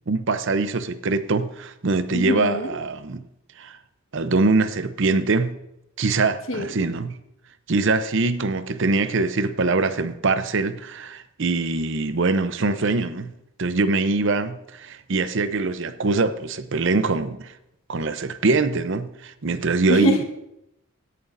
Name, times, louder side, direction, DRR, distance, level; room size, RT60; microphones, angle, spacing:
voice 1, 0.1-3.2 3.6-3.8 4.1-5.6 6.0-7.2 7.7-13.3 13.6-17.5 17.9-20.2, right 3 dB, 60° right, 0.7 m, -23 dB
voice 2, 2.1-2.7 6.5-6.8 19.9-20.2, equal, 70° left, 1.4 m, -23 dB
17.0 x 11.0 x 2.6 m
head